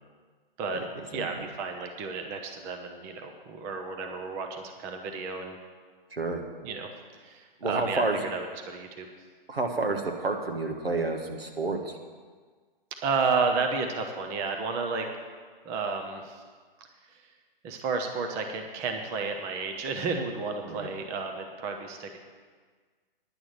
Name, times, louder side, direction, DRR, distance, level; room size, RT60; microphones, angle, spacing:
voice 1, 1.1-5.6 6.6-6.9 7.2-9.1 13.0-15.1 15.6-16.4 17.1-17.2 17.6-22.2, right 4 dB, 10° right, 4 dB, 0.4 m, -32 dB
voice 2, 6.1-6.4 7.6-8.3 9.5-12.0 20.7-20.9, right 3 dB, 90° right, 3 dB, 1.6 m, -29 dB
9.9 x 6.1 x 8.8 m, 1.5 s
hypercardioid pair, 135°, 29 cm